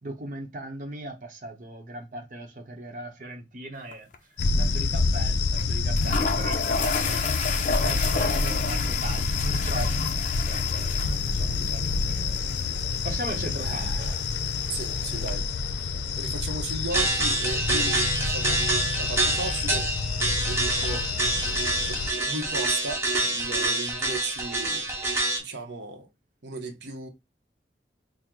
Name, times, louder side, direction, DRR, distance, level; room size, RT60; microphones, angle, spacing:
voice 1, 0.0-4.1 4.6-7.2 7.7-9.9 10.3-14.1 14.6-14.7 15.9-16.2, right 1 dB, 45° right, 0.8 m, -38 dB
sound 1, 3.9-4.2 4.4-4.5 5.6-5.7 6.0-15.3, left 4 dB, 45° left, 0.6 m, -33 dB
sound 2, 4.4-22.1, left 4 dB, 90° left, 0.5 m, -28 dB
voice 2, 13.6-14.2 14.7-15.5 15.7-18.6 19.0-19.9 20.5-21.1 21.9-24.9 25.4-26.1 26.4-27.1, right 3 dB, 85° right, 0.7 m, -36 dB
sound 3, 16.9-25.4, right 2 dB, 15° right, 0.9 m, -27 dB
4.5 x 2.0 x 3.6 m
head